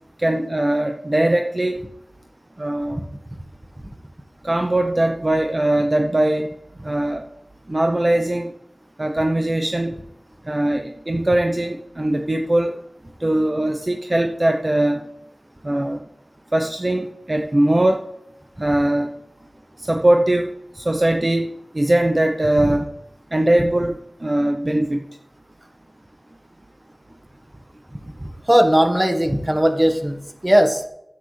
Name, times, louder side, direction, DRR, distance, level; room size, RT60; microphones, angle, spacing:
voice 1, 0.2-1.8 2.6-3.0 4.4-6.5 6.8-7.3 7.7-8.5 9.0-10.0 10.5-12.8 13.2-15.0 15.6-16.0 16.5-18.0 18.6-19.1 19.8-21.5 21.7-22.9 23.3-25.0, right 1 dB, 35° right, 5 dB, 0.8 m, -20 dB
voice 2, 28.5-30.2 30.4-30.8, equal, 20° right, 5 dB, 1.5 m, -17 dB
12.5 x 9.1 x 3.3 m, 0.80 s
wide cardioid pair, 55°, 0 cm